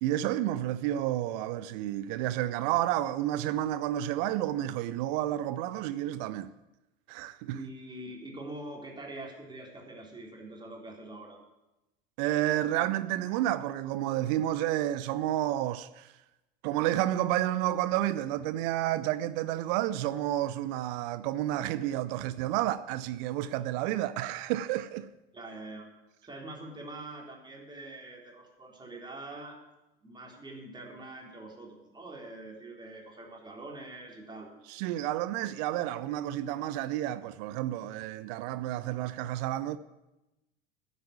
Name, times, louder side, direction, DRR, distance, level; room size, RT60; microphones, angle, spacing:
voice 1, 0.0-6.5 7.1-7.6 12.2-16.1 16.6-25.1 34.7-39.8, right 13 dB, 50° right, 0.6 m, -30 dB
voice 2, 7.5-11.4 25.3-25.9 26.2-29.6 30.0-34.5, right 2 dB, 15° right, 3.6 m, -44 dB
9.5 x 8.2 x 9.3 m
figure-of-eight pair, 75°, 30 cm